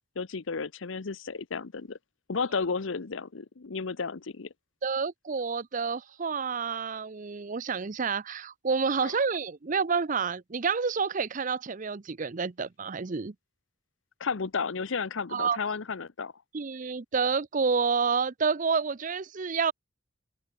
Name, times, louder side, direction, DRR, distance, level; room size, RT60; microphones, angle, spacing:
voice 1, 0.2-2.0 2.3-4.5 9.0-9.1 14.2-16.3, left 5 dB, 75° left, 0.8 m, -33 dB
voice 2, 4.8-13.3 15.3-15.6 16.5-19.7, right 5 dB, 40° right, 0.6 m, -29 dB
open air
head